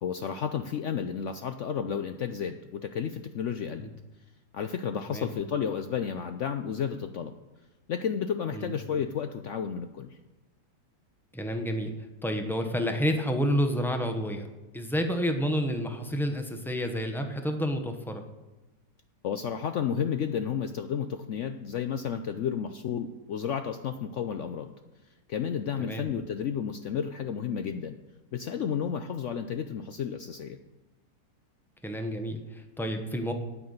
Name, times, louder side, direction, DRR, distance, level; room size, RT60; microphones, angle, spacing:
voice 1, 0.0-3.9 4.5-7.3 7.9-10.2 19.2-24.7 25.3-28.0 28.3-30.6, left 7 dB, 70° left, 8 dB, 0.7 m, -32 dB
voice 2, 11.3-11.9 12.2-14.5 14.7-18.2 25.8-26.0 31.8-33.3, equal, ahead, 5 dB, 0.6 m, -29 dB
9.3 x 8.8 x 6.5 m, 1.1 s
omnidirectional pair, 1.8 m